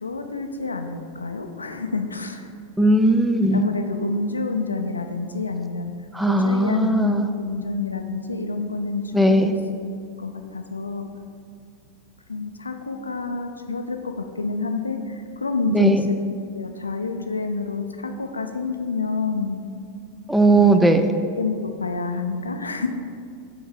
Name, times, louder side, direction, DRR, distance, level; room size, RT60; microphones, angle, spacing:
voice 1, 0.0-2.4 3.5-5.9 6.3-9.9 10.2-11.1 12.3-16.0 16.5-19.6 20.5-20.7 21.4-22.9, left 3 dB, 80° left, 6 dB, 0.4 m, -28 dB
voice 2, 2.8-3.7 6.1-7.3 9.1-9.5 15.7-16.1 20.3-21.1, right 1 dB, 5° right, 7 dB, 0.4 m, -18 dB
5.7 x 3.6 x 5.7 m, 2.3 s
figure-of-eight pair, 90°, 0 cm